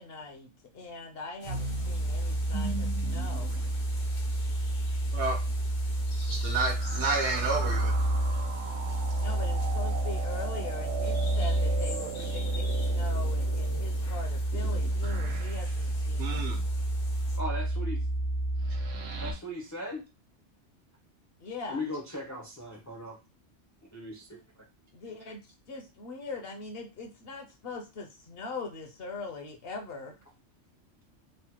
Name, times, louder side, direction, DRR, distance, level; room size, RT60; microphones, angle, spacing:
voice 1, 0.0-3.5 9.2-16.6 21.4-21.8 24.9-25.4 25.7-30.2, left 3 dB, 60° left, 3 dB, 0.8 m, -41 dB
sound 1, 1.4-17.4, left 3 dB, 80° left, 1.2 m, -47 dB
sound 2, 1.4-19.3, right 1 dB, 90° right, 1.0 m, -29 dB
voice 2, 6.3-7.9 16.2-16.6, right 3 dB, 65° right, 3 dB, 1.1 m, -30 dB
voice 3, 17.3-18.0 19.2-20.0 21.7-23.2 23.9-24.4, left 1 dB, 30° left, -1 dB, 0.3 m, -38 dB
3.2 x 2.1 x 2.8 m, 0.27 s
omnidirectional pair, 1.2 m